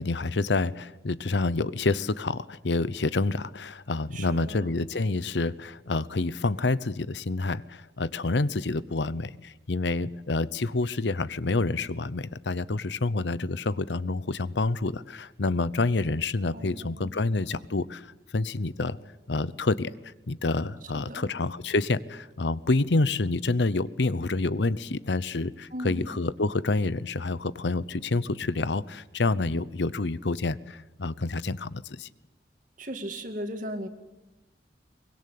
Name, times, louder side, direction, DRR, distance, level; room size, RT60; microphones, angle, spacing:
voice 1, 0.0-19.0 19.3-19.9 20.3-32.1, left 3 dB, 75° left, 17 dB, 0.8 m, -28 dB
voice 2, 4.1-4.7 16.5-17.2 20.9-21.3 25.7-26.1 32.8-33.9, equal, 45° right, 7 dB, 2.5 m, -37 dB
24.0 x 21.5 x 8.5 m, 0.98 s
head